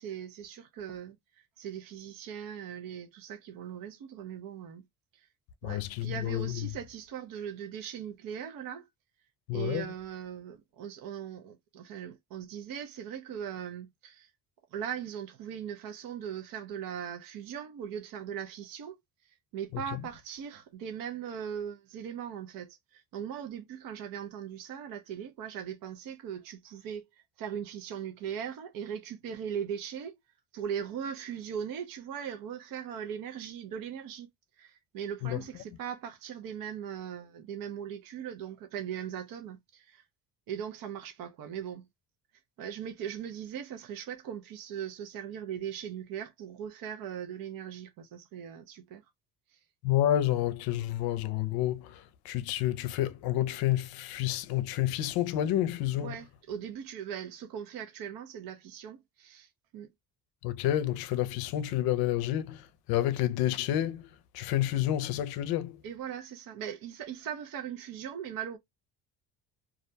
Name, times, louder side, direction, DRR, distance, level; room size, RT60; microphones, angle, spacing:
voice 1, 0.0-4.8 5.1-5.3 5.6-8.9 9.5-14.3 14.7-19.0 19.5-30.2 30.5-34.3 34.6-40.0 40.5-41.9 42.6-49.0 49.5-49.6 56.0-59.9 65.8-68.6, right 8 dB, 60° right, 0.7 m, -39 dB
voice 2, 5.6-6.7 9.5-9.9 35.3-35.4 49.8-56.1 60.4-64.1 64.3-65.8, left 12 dB, 75° left, 0.5 m, -29 dB
2.4 x 2.1 x 2.6 m
cardioid pair, 105°, 38 cm